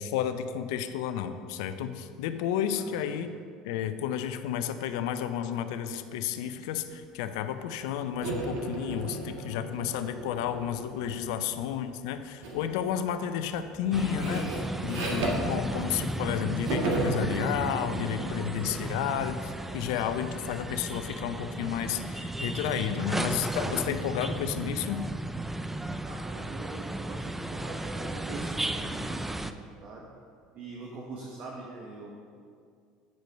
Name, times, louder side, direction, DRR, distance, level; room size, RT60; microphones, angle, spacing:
voice 1, 0.0-3.3 3.6-25.0, left 9 dB, 75° left, 10 dB, 0.5 m, -32 dB
sound 1, 8.2-11.5 12.4-12.7 13.1-16.3 16.6-20.2, right 2 dB, 70° right, 1.6 m, -35 dB
voice 2, 11.2-11.5 26.0-29.5 29.8-30.1 30.5-32.1, right 3 dB, 50° right, -2 dB, 1.2 m, -42 dB
sound 2, 13.9-29.5, right 1 dB, 10° right, 0.4 m, -34 dB
9.2 x 5.2 x 5.2 m, 2.2 s
hypercardioid pair, 75°, 3 cm